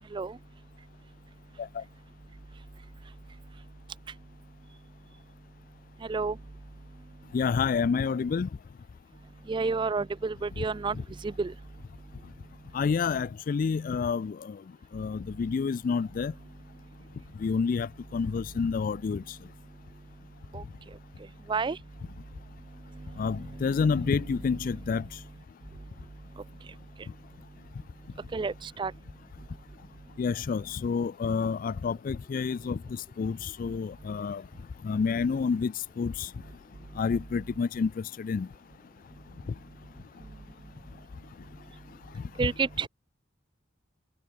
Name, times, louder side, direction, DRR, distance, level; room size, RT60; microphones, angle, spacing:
voice 1, 7.3-8.5 12.7-14.3 14.9-16.3 17.4-19.4 23.2-25.0 30.2-32.8 33.2-34.4 34.8-35.7 36.0-36.3 37.0-37.9 38.2-38.5, left 5 dB, 45° left, 0.3 m, -28 dB
voice 2, 9.5-11.0 11.2-11.5 20.5-20.6 21.5-21.8 23.8-24.1 28.3-28.9 42.4-42.9, right 4 dB, 25° right, 0.4 m, -30 dB
head